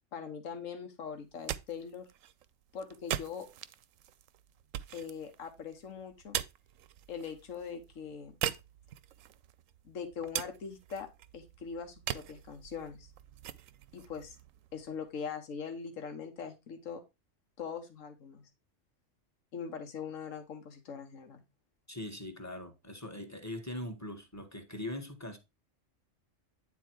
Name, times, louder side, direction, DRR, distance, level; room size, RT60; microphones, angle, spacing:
voice 1, 0.1-2.1 2.7-3.5 4.9-6.4 7.1-8.3 9.8-11.1 11.3-13.1 13.9-14.4 14.7-17.0 17.6-18.4 19.5-21.4, left 6 dB, 90° left, 1.5 m, -41 dB
sound 1, 1.2-15.1, right 11 dB, 85° right, 1.0 m, -42 dB
voice 2, 21.9-25.4, left 1 dB, 15° left, 1.1 m, -41 dB
9.4 x 4.1 x 4.5 m
omnidirectional pair, 1.3 m